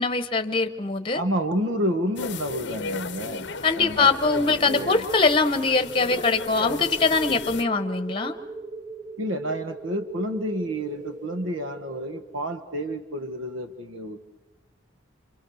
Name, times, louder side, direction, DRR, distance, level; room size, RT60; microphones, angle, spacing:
voice 1, 0.0-1.2 3.6-8.3, left 4 dB, 25° left, 9 dB, 1.0 m, -22 dB
voice 2, 1.1-5.1 9.2-14.2, equal, 75° right, 8 dB, 1.5 m, -30 dB
sound 1, 2.2-7.6, left 5 dB, 55° left, 0.7 m, -35 dB
sound 2, 5.7-12.2, right 3 dB, 40° right, 1.7 m, -39 dB
27.5 x 26.0 x 6.5 m, 1.1 s
head